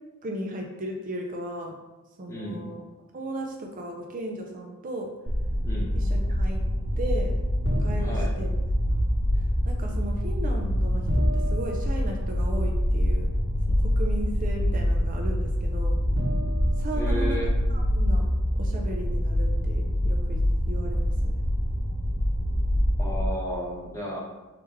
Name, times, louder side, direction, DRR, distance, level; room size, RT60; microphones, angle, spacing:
voice 1, 0.2-1.8 2.2-2.8 3.1-5.1 6.0-6.6 7.0-7.3 7.8-8.6 8.9-9.0 9.7-13.3 13.7-16.0 16.8-17.4 17.7-18.2 18.5-21.3, right 1 dB, 40° right, 1 dB, 0.5 m, -36 dB
voice 2, 2.3-2.7 5.6-5.9 8.0-8.3 16.9-17.5 23.0-24.2, equal, 15° left, -4 dB, 1.0 m, -33 dB
sound 1, 5.3-23.2, equal, 40° left, 0.9 m, -25 dB
sound 2, 7.6-8.6 11.0-12.7 13.9-14.0 16.1-17.9, right 1 dB, 65° right, 1.2 m, -34 dB
4.9 x 3.1 x 3.4 m, 1.1 s
head